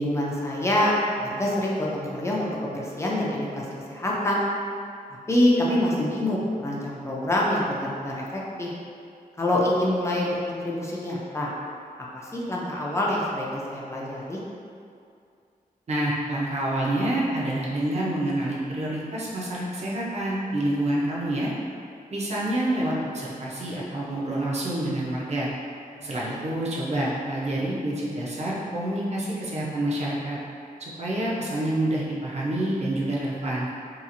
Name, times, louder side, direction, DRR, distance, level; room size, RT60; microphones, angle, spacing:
voice 1, 0.0-4.4 5.3-8.7 9.4-11.5 12.1-14.4 26.3-26.4, left 1 dB, 20° left, -4 dB, 0.4 m, -26 dB
voice 2, 15.9-21.5 22.1-25.5 26.0-30.4 30.8-33.7, right 1 dB, 45° right, -5 dB, 0.5 m, -27 dB
2.8 x 2.4 x 2.5 m, 2.4 s
wide cardioid pair, 170°, 16 cm